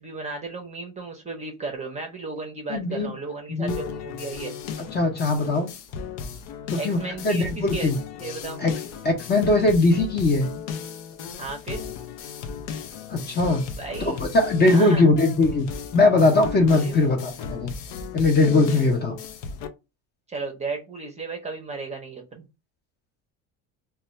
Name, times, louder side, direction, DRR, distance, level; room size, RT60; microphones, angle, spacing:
voice 1, 0.0-4.6 6.7-7.9 8.2-8.6 11.4-11.8 13.7-14.2 14.6-15.1 16.7-17.0 20.3-22.4, right 3 dB, 15° right, 2 dB, 0.6 m, -34 dB
voice 2, 2.7-3.1 3.5-3.8 4.9-5.7 6.7-8.0 8.6-8.7 9.0-10.5 13.1-13.6 14.0-15.7 15.9-17.7 18.1-19.2, left 2 dB, 25° left, 3 dB, 0.6 m, -20 dB
sound 1, 3.7-19.7, left 6 dB, 80° left, 0.7 m, -35 dB
2.3 x 2.3 x 4.0 m, 0.26 s
cardioid pair, 145°, 40 cm